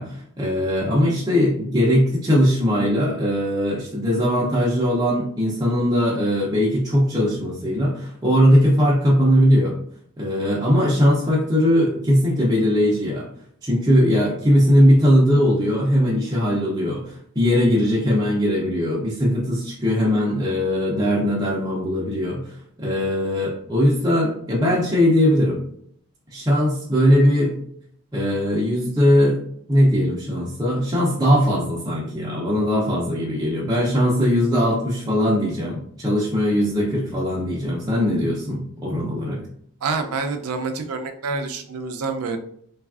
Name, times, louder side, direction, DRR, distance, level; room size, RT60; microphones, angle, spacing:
voice 1, 0.0-9.8 10.2-13.3 13.6-25.6 26.3-27.6 28.1-29.4 29.7-39.4, equal, 15° right, -6 dB, 0.5 m, -20 dB
voice 2, 39.8-42.4, right 4 dB, 75° right, 6 dB, 0.4 m, -27 dB
3.3 x 2.3 x 2.4 m, 0.66 s
head